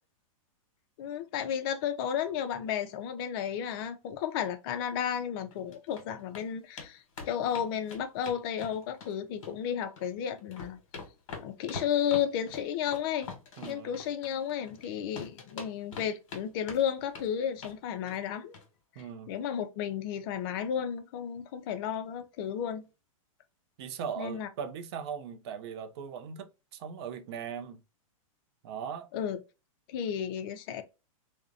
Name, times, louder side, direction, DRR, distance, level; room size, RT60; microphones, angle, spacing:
voice 1, 1.0-10.8 11.4-13.3 13.6-18.5 19.0-22.9 24.2-24.5 29.1-29.4 29.9-30.8, left 9 dB, 45° left, 0.4 m, -33 dB
sound 1, 5.5-6.0 6.3-6.5 6.8-6.9 7.2-9.1 9.4-10.1 10.4-14.9 15.2-16.4 16.7-17.3 17.6-17.8 18.1-18.3 18.5-18.7 19.0-19.1, left 4 dB, 60° left, 1.0 m, -43 dB
voice 2, 13.6-14.0 19.0-19.3 23.8-27.8 28.6-29.1, right 7 dB, 50° right, 0.4 m, -39 dB
2.5 x 2.0 x 2.4 m
hypercardioid pair, 145°, 18 cm